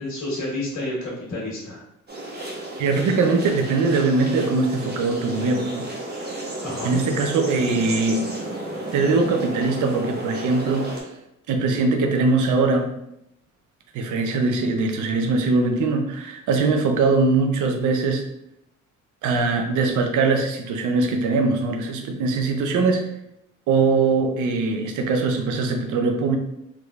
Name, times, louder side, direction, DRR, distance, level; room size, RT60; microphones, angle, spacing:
voice 1, 0.0-1.8 6.6-7.0, left 1 dB, 80° left, -6 dB, 1.4 m, -30 dB
sound 1, 2.1-11.0, right 1 dB, 35° right, 1.0 m, -33 dB
voice 2, 2.8-5.8 6.8-8.2 8.9-10.9 11.5-12.9 13.9-18.2 19.2-23.1 23.7-26.4, right 3 dB, 80° right, 4 dB, 0.6 m, -21 dB
3.5 x 3.2 x 2.4 m, 0.82 s
cardioid pair, 90°, 30 cm